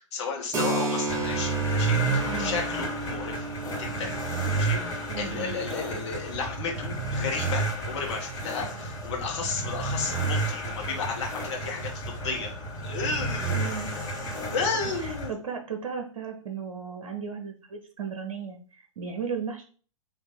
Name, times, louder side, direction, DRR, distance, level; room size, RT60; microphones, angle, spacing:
voice 1, 0.1-3.5 3.8-4.1 4.5-12.5 12.8-13.7 14.5-15.3, left 4 dB, 55° left, 0 dB, 1.2 m, -33 dB
Keyboard (musical), 0.5-7.9, right 2 dB, 15° right, 0.8 m, -34 dB
sound 1, 1.1-15.3, right 2 dB, 20° left, 1.8 m, -31 dB
voice 2, 2.2-2.6 5.1-5.6 13.5-13.9 15.0-19.6, right 6 dB, 60° right, 4 dB, 0.8 m, -35 dB
3.6 x 2.9 x 4.0 m, 0.41 s
figure-of-eight pair, 110°, 18 cm